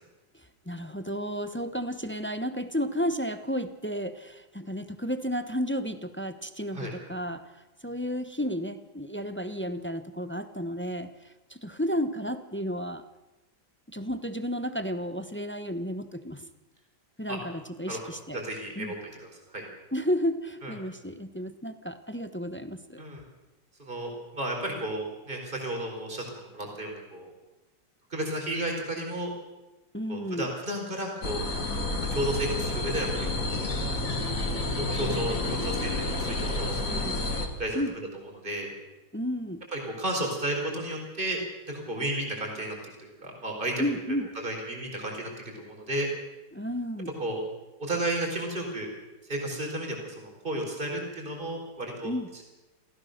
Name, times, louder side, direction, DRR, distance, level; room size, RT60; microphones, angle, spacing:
voice 1, 0.3-13.0 13.9-16.5 17.2-18.4 18.8-18.9 19.9-23.0 29.9-30.5 36.9-37.2 37.7-38.0 39.1-39.6 43.8-44.4 46.5-47.1 52.0-52.3, equal, 10° left, 10 dB, 0.7 m, -32 dB
voice 2, 18.3-19.3 19.5-19.6 20.6-20.7 23.0-23.2 23.8-27.3 28.1-29.3 30.1-31.4 32.1-33.7 34.9-37.0 37.6-37.8 38.4-38.7 39.7-41.4 41.7-43.7 44.4-46.1 47.2-47.4 47.8-48.9 49.3-52.1, right 1 dB, 25° right, 1 dB, 4.8 m, -33 dB
sound 1, 31.2-37.5, left 2 dB, 50° left, 3.0 m, -30 dB
28.0 x 16.0 x 6.7 m, 1.1 s
omnidirectional pair, 1.9 m